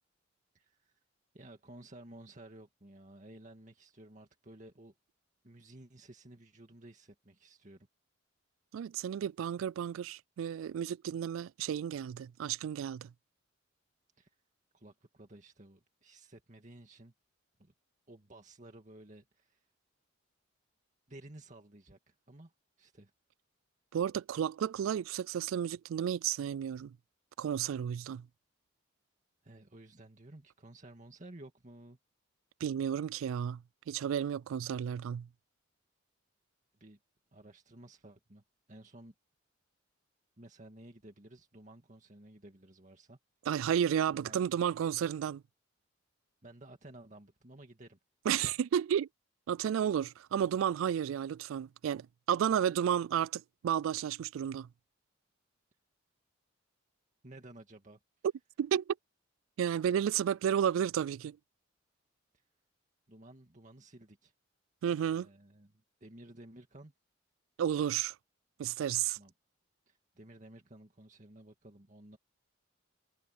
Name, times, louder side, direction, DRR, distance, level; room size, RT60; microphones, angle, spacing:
voice 1, 0.5-1.0 1.3-4.9 5.4-7.9 14.2-14.3 14.7-17.1 17.6-17.7 18.1-19.7 21.1-22.5 22.8-23.1 29.4-32.0 36.8-37.0 37.3-39.1 40.4-43.2 44.1-44.4 46.4-48.0 57.2-58.0 62.3-62.4 63.1-64.3 65.0-66.9 69.2-69.3 69.9-72.2, right 1 dB, 40° right, 2.0 m, -54 dB
voice 2, 8.7-13.1 23.9-27.0 27.4-28.3 32.6-33.6 33.9-35.3 43.5-45.4 48.3-49.1 49.5-54.7 58.6-58.9 59.6-61.4 64.8-65.3 67.6-68.1 68.6-69.2, right 9 dB, 90° right, 0.3 m, -32 dB
head